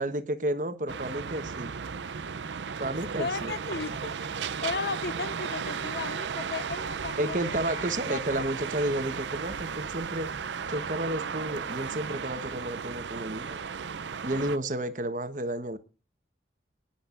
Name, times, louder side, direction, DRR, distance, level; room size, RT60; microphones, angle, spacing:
voice 1, 0.0-1.7 2.8-3.5 7.2-10.3 10.7-13.6 14.2-15.8, right 1 dB, 45° right, 1.2 m, -31 dB
sound 1, 0.9-14.6, right 6 dB, 85° right, 0.6 m, -35 dB
voice 2, 3.2-4.3 4.6-8.4, left 4 dB, 65° left, 0.6 m, -35 dB
23.0 x 10.0 x 2.5 m
head